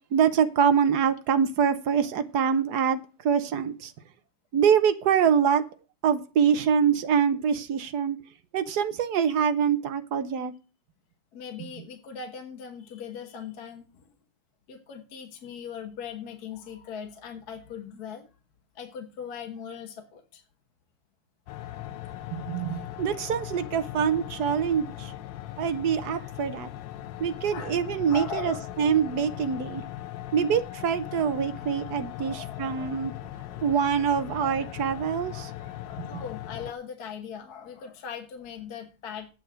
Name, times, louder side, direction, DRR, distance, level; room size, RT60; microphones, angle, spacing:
voice 1, 0.1-3.9 4.5-5.6 6.0-8.2 8.5-10.5 22.3-25.1 25.6-26.7 27.2-29.8 30.3-33.1 33.6-35.5 36.1-36.2, right 7 dB, 60° right, 1.2 m, -25 dB
voice 2, 11.3-14.0 14.7-18.3 18.7-20.4 27.5-27.8 28.1-28.7 32.2-33.1 34.4-34.7 35.8-39.3, left 7 dB, 50° left, 1.6 m, -40 dB
sound 1, 21.5-36.7, left 13 dB, 70° left, 1.2 m, -39 dB
8.8 x 6.8 x 6.4 m
omnidirectional pair, 2.3 m